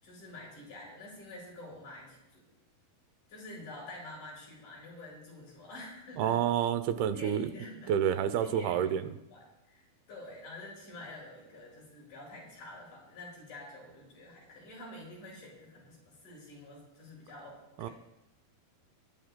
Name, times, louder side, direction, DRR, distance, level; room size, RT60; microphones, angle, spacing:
voice 1, 0.0-2.5 3.3-6.4 7.1-17.9, left 1 dB, 55° left, -5 dB, 7.4 m, -48 dB
voice 2, 6.2-7.5 7.9-9.1 17.8-17.9, right 9 dB, 85° right, 11 dB, 2.7 m, -29 dB
24.0 x 12.0 x 2.3 m, 0.89 s
omnidirectional pair, 4.4 m